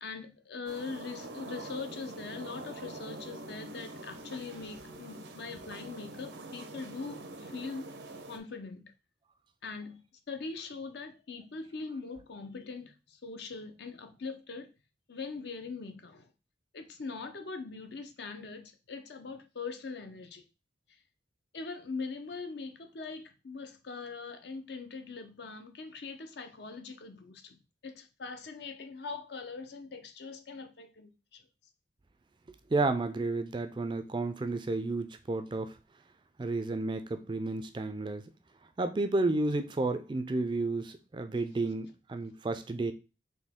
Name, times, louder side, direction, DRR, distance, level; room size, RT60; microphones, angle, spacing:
voice 1, 0.0-7.9 8.3-8.9 9.6-14.7 15.1-16.3 16.7-20.4 20.9-21.0 21.5-31.5, left 4 dB, 70° left, 0.6 m, -42 dB
sound 1, 0.7-8.4, right 2 dB, 85° right, 0.7 m, -45 dB
voice 2, 32.7-35.8 36.4-38.2 38.8-42.9, right 2 dB, 25° right, 0.3 m, -31 dB
4.2 x 2.8 x 3.6 m
head